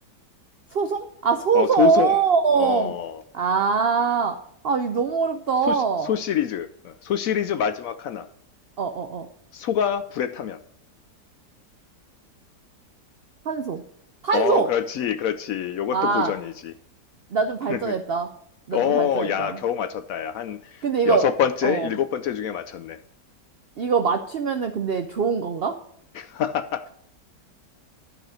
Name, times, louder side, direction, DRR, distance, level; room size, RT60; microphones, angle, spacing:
voice 1, 0.7-2.9 3.3-4.4 4.6-6.1 8.8-9.3 13.5-13.8 14.2-14.7 15.9-16.3 17.3-18.3 18.7-19.6 20.8-21.3 21.6-21.9 23.8-25.8, right 5 dB, 90° right, 0.5 m, -23 dB
voice 2, 1.5-2.2 2.6-3.2 5.6-8.3 9.5-10.6 14.3-16.7 17.7-17.9 18.7-23.0 26.1-26.9, left 9 dB, 70° left, 0.8 m, -26 dB
11.5 x 4.9 x 6.2 m
omnidirectional pair, 1.8 m